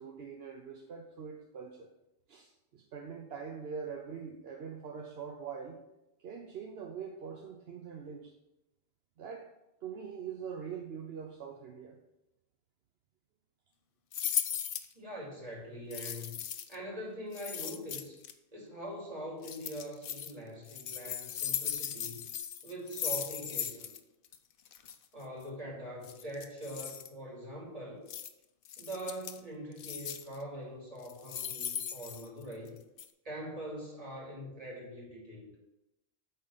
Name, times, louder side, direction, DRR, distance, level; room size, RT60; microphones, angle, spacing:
voice 1, 0.0-1.9 2.3-5.8 6.2-8.3 9.2-9.5 9.8-12.0, right 6 dB, 70° right, 2 dB, 1.0 m, -43 dB
sound 1, 14.1-14.9 15.9-16.8 17.3-18.3 19.4-20.3 20.7-24.0 24.2-24.4 24.7-24.9 26.0-27.1 28.1-28.3 28.7-29.4 29.8-30.4 31.0-32.7 33.0-33.1, left 9 dB, 60° left, 0.7 m, -37 dB
voice 2, 14.9-16.3 16.7-18.2 18.5-22.2 22.6-23.9 25.1-28.0 28.8-32.8 33.2-35.5, equal, 35° right, -3 dB, 2.4 m, -43 dB
8.7 x 3.9 x 5.6 m, 0.91 s
omnidirectional pair, 1.1 m